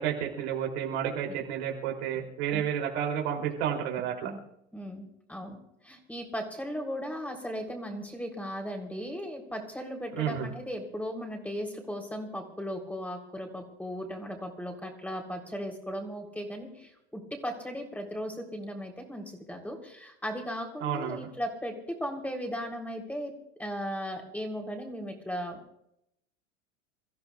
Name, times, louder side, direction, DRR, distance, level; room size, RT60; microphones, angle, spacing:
voice 1, 0.0-4.3 10.2-10.5 20.8-21.3, right 9 dB, 60° right, 1 dB, 3.4 m, -31 dB
voice 2, 4.7-5.6 5.8-21.7 22.0-23.3 23.6-25.8, equal, 5° left, 2 dB, 3.7 m, -37 dB
28.5 x 14.5 x 2.5 m, 0.79 s
hypercardioid pair, 90°, 37 cm